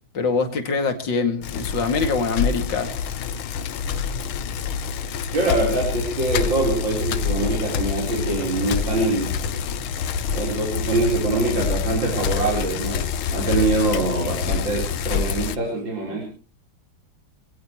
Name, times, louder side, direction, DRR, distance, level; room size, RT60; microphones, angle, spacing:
voice 1, 0.1-3.0, left 4 dB, 60° left, 7 dB, 2.9 m, -24 dB
Bicycle, 1.4-15.6, left 6 dB, 85° left, 1.8 m, -27 dB
voice 2, 5.3-9.3 10.3-13.0 13.3-16.2, right 2 dB, 65° right, -2 dB, 5.0 m, -24 dB
25.0 x 17.5 x 3.1 m, 0.37 s
omnidirectional pair, 2.2 m